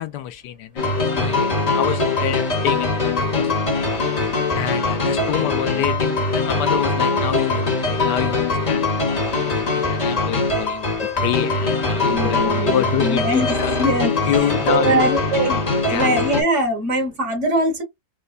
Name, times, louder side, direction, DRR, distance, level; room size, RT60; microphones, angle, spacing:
voice 1, 0.0-3.8 4.5-13.7 14.3-15.1 15.9-16.1, left 11 dB, 90° left, 1.2 m, -27 dB
sound 1, 0.8-16.4, left 3 dB, 25° left, 1.1 m, -22 dB
voice 2, 12.1-14.1 14.7-15.6 15.9-17.8, right 1 dB, 45° right, 1.7 m, -22 dB
5.0 x 2.1 x 2.5 m
omnidirectional pair, 1.8 m